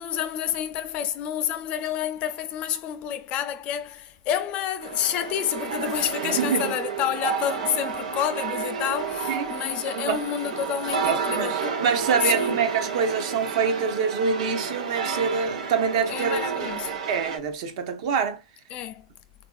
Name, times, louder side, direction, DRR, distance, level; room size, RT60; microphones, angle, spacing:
voice 1, 0.0-11.8 12.2-12.6 16.1-16.9 18.7-19.1, left 10 dB, 30° left, 0.3 m, -29 dB
sound 1, 4.8-17.4, right 6 dB, 75° right, 0.8 m, -31 dB
voice 2, 6.2-6.7 9.3-9.6 9.9-10.2 11.0-16.7 17.1-18.4, right 6 dB, 50° right, 0.6 m, -26 dB
3.6 x 2.6 x 2.3 m
supercardioid pair, 160°, 4 cm